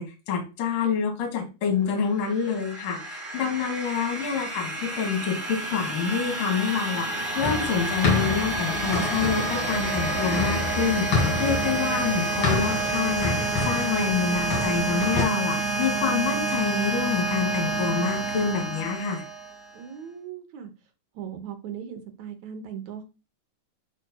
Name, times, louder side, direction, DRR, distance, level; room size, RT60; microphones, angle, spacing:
voice 1, 0.0-19.2, left 6 dB, 70° left, 3.3 m, -27 dB
sound 1, 2.2-19.8, right 2 dB, 50° right, 0.9 m, -29 dB
sound 2, 7.4-15.2, left 3 dB, 40° left, 2.7 m, -29 dB
voice 2, 19.7-20.7 21.2-23.0, right 8 dB, 70° right, 1.8 m, -38 dB
11.0 x 4.2 x 2.2 m
omnidirectional pair, 4.1 m